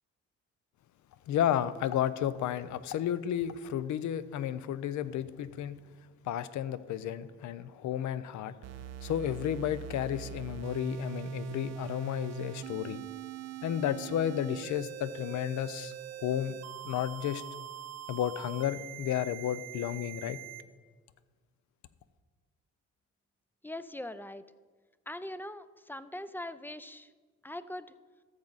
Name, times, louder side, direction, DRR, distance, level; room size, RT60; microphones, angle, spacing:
voice 1, 1.3-5.8 6.2-8.6 9.0-13.0 13.6-15.9 16.2-16.6 16.8-17.4 18.1-20.4, left 10 dB, 70° left, 15 dB, 0.6 m, -32 dB
sound 1, 8.6-20.6, right 10 dB, 60° right, 0.6 m, -42 dB
voice 2, 23.6-24.5 25.1-27.1 27.4-27.9, left 1 dB, 5° left, 13 dB, 0.4 m, -41 dB
13.5 x 7.4 x 4.0 m, 1.5 s
cardioid pair, 90°, 30 cm